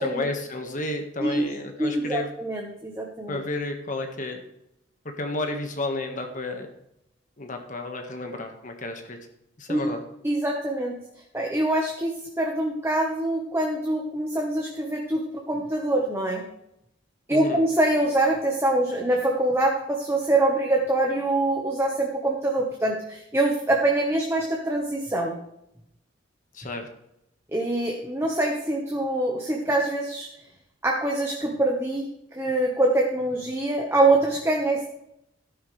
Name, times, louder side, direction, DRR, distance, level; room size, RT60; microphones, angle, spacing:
voice 1, 0.0-2.3 3.3-4.4 5.2-6.7 7.4-9.2 9.6-10.0 17.3-17.6 26.5-26.9, left 2 dB, 45° left, 4 dB, 1.6 m, -31 dB
voice 2, 1.8-3.4 9.7-9.9 10.2-11.0 11.3-16.4 17.3-25.3 27.5-30.3 30.8-34.9, right 1 dB, 15° right, 0 dB, 1.3 m, -24 dB
13.5 x 10.0 x 3.4 m, 0.81 s
head